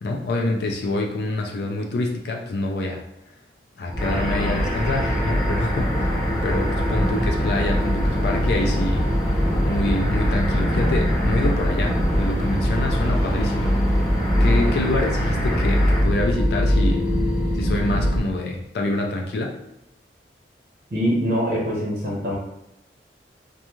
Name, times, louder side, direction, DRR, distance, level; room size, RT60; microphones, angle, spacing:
voice 1, 0.0-3.0 3.8-9.0 9.6-13.8 14.4-17.1 17.5-19.5, left 2 dB, 65° left, 1 dB, 0.3 m, -26 dB
sound 1, 3.9-18.2, equal, 5° right, 0.4 m, -22 dB
sound 2, 4.0-16.0, equal, 20° left, 0.8 m, -30 dB
voice 2, 20.9-22.4, equal, 55° right, -4 dB, 0.6 m, -23 dB
2.5 x 2.3 x 3.0 m, 0.85 s
head